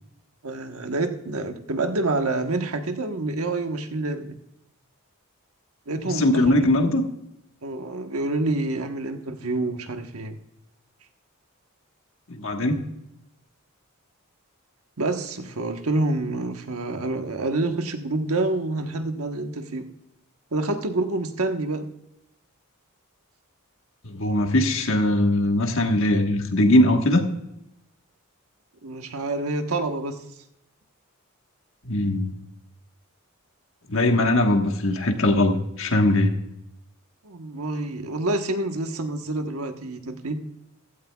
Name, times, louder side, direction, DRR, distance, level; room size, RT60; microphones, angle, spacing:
voice 1, 0.4-4.3 5.9-6.9 7.6-10.4 15.0-19.9 20.5-21.9 28.8-30.2 37.2-40.4, right 2 dB, 85° right, 6 dB, 1.2 m, -27 dB
voice 2, 6.0-7.0 12.3-12.8 24.0-27.2 31.9-32.3 33.9-36.3, left 1 dB, 65° left, 4 dB, 1.5 m, -20 dB
15.5 x 12.5 x 2.3 m, 0.84 s
head